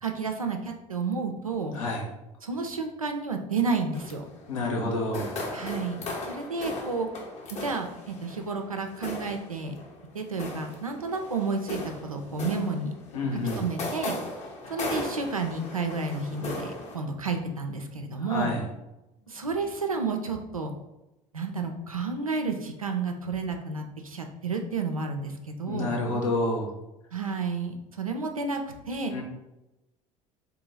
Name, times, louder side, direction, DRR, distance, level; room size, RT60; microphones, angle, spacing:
voice 1, 0.0-1.8 2.4-4.2 5.5-6.0 6.3-7.1 7.5-9.7 10.1-13.0 13.6-14.2 14.7-18.6 19.3-20.7 21.3-26.0 27.1-29.1, right 4 dB, 90° right, 4 dB, 0.5 m, -31 dB
voice 2, 1.7-2.1 4.5-5.4 13.1-13.7 18.2-18.6 25.7-26.7 29.1-29.2, left 2 dB, 75° left, -1 dB, 1.0 m, -29 dB
sound 1, 3.9-17.0, left 2 dB, 40° left, 1.0 m, -37 dB
3.7 x 2.8 x 4.0 m, 0.96 s
figure-of-eight pair, 65°, 17 cm